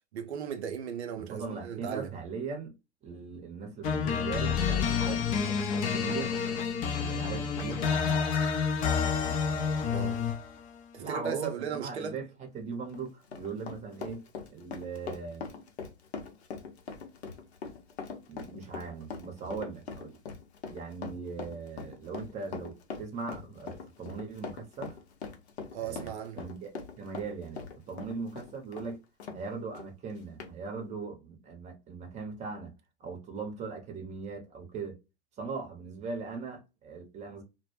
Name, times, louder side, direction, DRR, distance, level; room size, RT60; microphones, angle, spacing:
voice 1, 0.1-2.1 9.9-10.2 10.9-12.2 25.7-26.4, right 7 dB, 80° right, 0.5 m, -36 dB
voice 2, 1.3-2.7 3.0-5.3 5.9-6.3 7.1-8.2 11.0-12.2 12.5-14.2 14.5-15.4 18.3-20.2 20.7-25.0 25.8-26.1 26.3-26.7 27.0-29.0 29.3-32.7 33.0-35.0 35.4-37.4, right 4 dB, 20° right, 0.7 m, -39 dB
sound 1, 3.8-10.5, left 6 dB, 25° left, 0.4 m, -29 dB
Run, 12.7-29.4 29.7-29.9 30.4-30.5, left 5 dB, 75° left, 0.7 m, -42 dB
2.1 x 2.1 x 3.0 m
hypercardioid pair, 110°, 33 cm